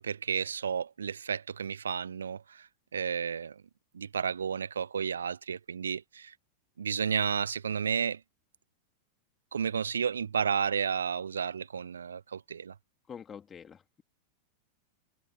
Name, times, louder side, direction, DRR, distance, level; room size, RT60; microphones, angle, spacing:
voice 1, 0.0-3.6 3.9-6.3 6.8-8.2 9.5-12.7, right 7 dB, 70° right, 0.8 m, -32 dB
voice 2, 13.1-14.0, left 7 dB, 20° left, 3.6 m, -46 dB
figure-of-eight pair, 90°, 0 cm